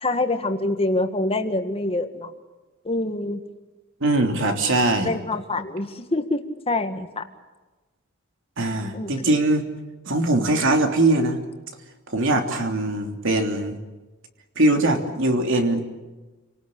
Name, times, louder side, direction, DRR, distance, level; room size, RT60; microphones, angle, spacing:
voice 1, 0.0-2.3 2.9-3.4 5.0-6.4 6.7-7.2 8.9-9.3, left 2 dB, 30° left, 7 dB, 1.8 m, -25 dB
voice 2, 4.0-5.2 8.6-9.6 10.1-11.4 12.1-13.8 14.6-15.9, right 2 dB, 65° right, 4 dB, 3.2 m, -21 dB
29.0 x 19.0 x 8.5 m, 1.2 s
head